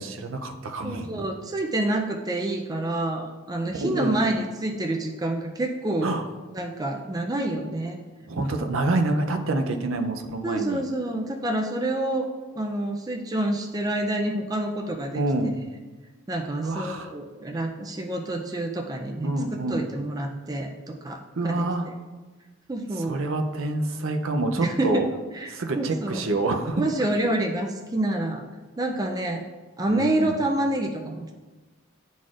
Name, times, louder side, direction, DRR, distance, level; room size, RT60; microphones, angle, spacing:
voice 1, 0.0-1.1 3.8-4.2 6.0-6.3 8.3-10.8 15.1-15.5 16.6-17.1 19.2-19.8 21.4-21.9 23.0-25.1 25.5-26.8 29.9-30.4, right 2 dB, 65° right, 5 dB, 0.6 m, -27 dB
voice 2, 0.8-6.1 6.5-8.0 10.4-12.3 12.5-15.2 16.3-20.7 21.0-21.9 22.7-23.2 24.6-25.0 25.3-26.2 26.8-28.4 28.8-29.4 29.8-31.3, right 1 dB, 20° right, 2 dB, 0.4 m, -28 dB
11.0 x 4.1 x 2.5 m, 1.3 s
head